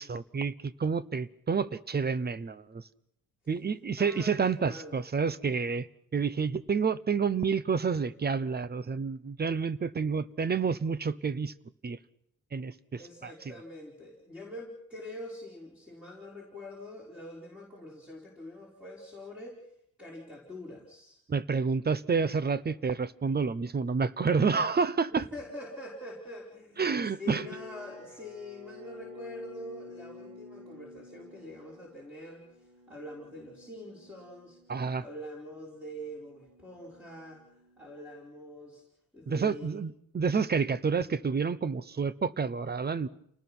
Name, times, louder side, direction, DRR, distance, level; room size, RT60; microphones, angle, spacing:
voice 1, 0.0-2.8 3.5-5.9 6.1-11.5 11.8-12.0 12.5-13.5 21.3-25.3 26.8-27.5 34.7-35.0 39.3-43.1, right 5 dB, 25° right, 16 dB, 0.9 m, -29 dB
voice 2, 3.9-5.0 13.0-21.2 25.1-34.6 35.0-38.8 39.1-39.8, left 1 dB, 5° right, -3 dB, 5.0 m, -45 dB
sound 1, 27.2-38.3, left 4 dB, 60° right, 3.9 m, -51 dB
29.5 x 19.5 x 6.2 m, 0.71 s
cardioid pair, 135°, 36 cm